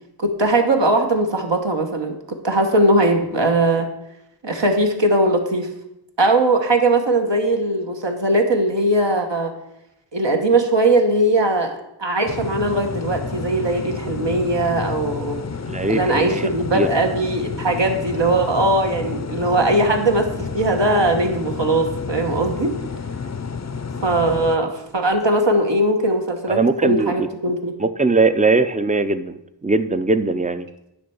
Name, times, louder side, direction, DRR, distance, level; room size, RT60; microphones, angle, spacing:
voice 1, 0.2-3.9 4.4-5.7 6.2-9.5 10.1-11.7 12.0-15.4 15.9-22.7 24.0-27.7, right 2 dB, 65° right, 3 dB, 1.3 m, -19 dB
sound 1, 12.3-24.6, left 5 dB, 35° left, 0.6 m, -30 dB
voice 2, 15.7-16.9 26.5-27.3 27.8-30.7, right 3 dB, 15° right, 12 dB, 0.5 m, -20 dB
10.0 x 3.4 x 7.0 m, 0.85 s
wide cardioid pair, 45°, 46 cm